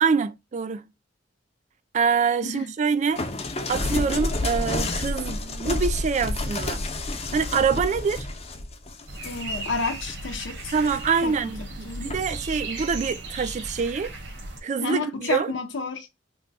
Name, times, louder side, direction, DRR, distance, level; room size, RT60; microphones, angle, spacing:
voice 1, 0.0-0.8 1.9-3.2 3.7-6.8 7.3-8.3 10.7-14.1 14.6-15.5, right 5 dB, 40° right, 0.4 m, -25 dB
sound 1, 3.2-10.1 10.6-11.2 12.1-12.4, left 2 dB, 35° left, 0.6 m, -30 dB
sound 2, 9.1-14.6, right 2 dB, 65° right, 1.0 m, -36 dB
voice 2, 9.2-10.7 11.2-12.1 14.8-16.1, left 4 dB, 85° left, 0.6 m, -31 dB
3.1 x 2.2 x 3.8 m
head